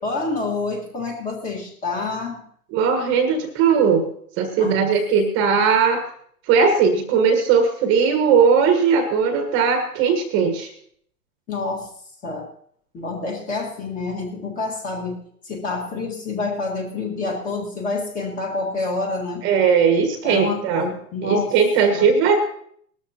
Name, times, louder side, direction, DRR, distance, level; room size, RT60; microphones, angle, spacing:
voice 1, 0.0-2.4 4.6-4.9 11.5-11.9 12.2-12.5 12.9-19.5 20.2-21.5 21.9-22.1, left 3 dB, 15° left, 0 dB, 1.8 m, -28 dB
voice 2, 2.7-4.1 4.4-6.0 6.5-10.7 19.4-20.9 21.2-22.4, right 6 dB, 25° right, 5 dB, 1.4 m, -18 dB
19.0 x 13.5 x 2.9 m, 0.64 s
hypercardioid pair, 145°, 49 cm